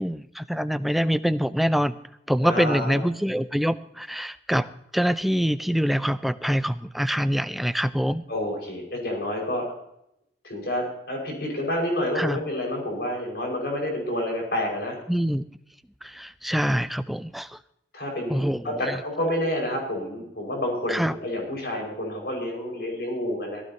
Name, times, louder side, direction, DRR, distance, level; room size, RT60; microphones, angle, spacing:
voice 1, 0.0-2.0 2.3-8.2 12.1-12.4 15.1-15.4 16.0-17.6 18.3-19.0 20.9-21.2, equal, ahead, 13 dB, 0.4 m, -25 dB
voice 2, 2.4-3.0 8.3-9.7 10.4-15.0 17.9-23.6, left 1 dB, 65° left, -1 dB, 5.5 m, -29 dB
18.0 x 15.0 x 2.9 m, 0.79 s
head